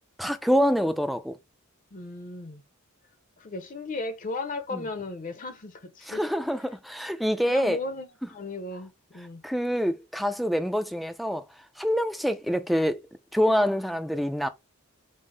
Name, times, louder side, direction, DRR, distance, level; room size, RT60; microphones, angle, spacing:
voice 1, 0.2-1.4 4.7-4.8 6.1-7.8 9.4-11.4 11.8-13.0 13.3-14.5, equal, ahead, 0.4 m, -26 dB
voice 2, 1.9-2.6 3.4-6.2 7.4-9.4, left 3 dB, 40° left, 0.6 m, -36 dB
5.3 x 2.0 x 3.2 m
head